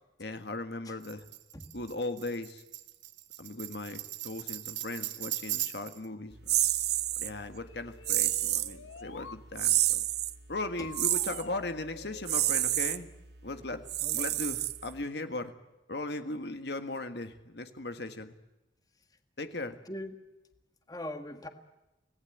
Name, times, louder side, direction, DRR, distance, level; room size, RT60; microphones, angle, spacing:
voice 1, 0.2-1.3 1.7-2.6 3.4-6.7 7.2-10.1 10.5-13.1 13.4-13.9 14.1-15.5 15.9-18.3 19.4-19.8, left 2 dB, 60° left, 8 dB, 1.6 m, -38 dB
Tambourine, 1.0-6.1, right 14 dB, 80° right, 1.6 m, -38 dB
sound 1, 6.5-7.3 8.1-8.7 9.6-10.3 10.9-11.4 12.3-13.0 13.9-15.0, right 14 dB, 55° right, 0.9 m, -28 dB
sound 2, 7.6-9.4 10.8-12.8, left 4 dB, 90° left, 1.1 m, -48 dB
voice 2, 20.9-21.5, left 1 dB, 20° left, 7 dB, 1.7 m, -40 dB
25.5 x 18.5 x 9.2 m, 1.0 s
head